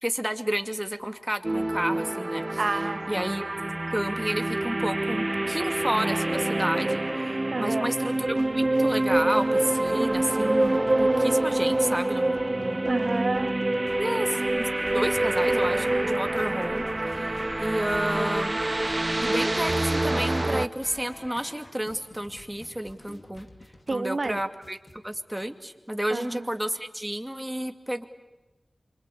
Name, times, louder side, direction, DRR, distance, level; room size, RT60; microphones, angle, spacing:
voice 1, 0.0-2.6 3.1-3.4 3.9-12.8 14.0-14.7 14.9-18.6 19.2-23.5 23.9-24.8 25.0-28.0, right 1 dB, 10° right, 7 dB, 2.5 m, -31 dB
sound 1, 1.4-20.7, right 2 dB, 35° right, 1.0 m, -26 dB
voice 2, 2.6-3.3 7.5-7.9 12.8-13.6 23.9-24.4 26.1-26.5, right 3 dB, 55° right, 12 dB, 1.1 m, -30 dB
sound 2, 8.2-25.5, left 1 dB, 45° left, 2.6 m, -49 dB
sound 3, 14.4-19.9, equal, 10° left, 3.2 m, -48 dB
27.0 x 25.5 x 8.5 m, 1.1 s
wide cardioid pair, 50°, 0 cm